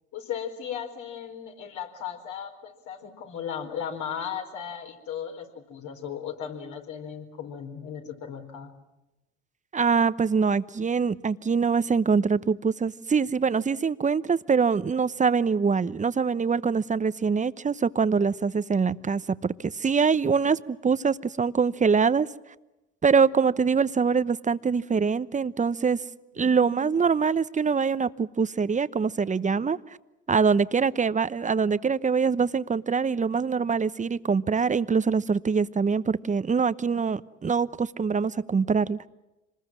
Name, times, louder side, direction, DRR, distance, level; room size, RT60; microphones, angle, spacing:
voice 1, 0.1-8.7 26.3-26.9, left 8 dB, 65° left, 4 dB, 4.5 m, -36 dB
voice 2, 9.7-22.3 23.0-26.0 26.4-29.8 30.3-39.0, right 5 dB, 20° right, 16 dB, 0.9 m, -24 dB
26.5 x 20.5 x 7.5 m, 0.98 s
hypercardioid pair, 70°, 33 cm